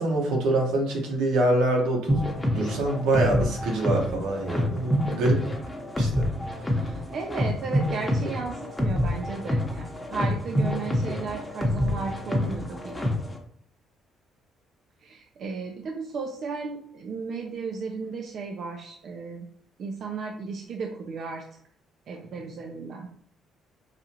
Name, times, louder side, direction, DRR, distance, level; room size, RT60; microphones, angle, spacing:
voice 1, 0.0-5.4 6.0-6.3, right 2 dB, 90° right, 0 dB, 1.2 m, -25 dB
sound 1, 2.1-13.4, left 1 dB, 10° left, 0.9 m, -27 dB
voice 2, 6.8-13.2 15.0-19.5 19.8-21.4 22.1-23.1, right 4 dB, 60° right, 2 dB, 0.5 m, -35 dB
4.9 x 2.4 x 2.9 m, 0.64 s
cardioid pair, 90°, 0 cm